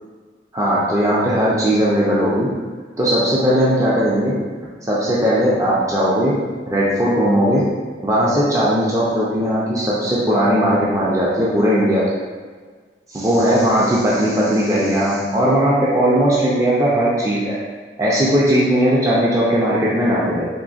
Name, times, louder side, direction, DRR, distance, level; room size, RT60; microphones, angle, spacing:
voice 1, 0.5-2.5 3.0-4.4 4.8-6.4 6.7-7.7 8.0-12.1 13.1-17.6 18.0-20.4, equal, 20° right, -7 dB, 0.4 m, -18 dB
3.8 x 3.1 x 2.4 m, 1.5 s
head